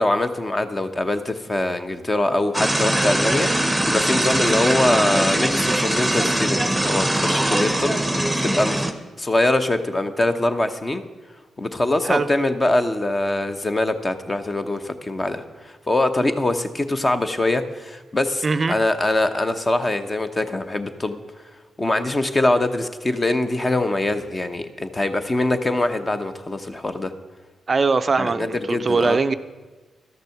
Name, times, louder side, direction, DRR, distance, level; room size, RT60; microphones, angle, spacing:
voice 1, 0.0-3.5 3.8-8.8 9.2-11.0 11.6-21.2 21.8-27.1 28.2-29.2, left 2 dB, 25° left, 8 dB, 0.9 m, -23 dB
sound 1, 2.5-8.9, right 1 dB, 5° right, 0.9 m, -21 dB
voice 2, 18.4-18.8 27.7-29.3, right 4 dB, 45° right, 12 dB, 0.4 m, -21 dB
12.5 x 6.7 x 5.8 m, 1.4 s
cardioid pair, 65°, 0 cm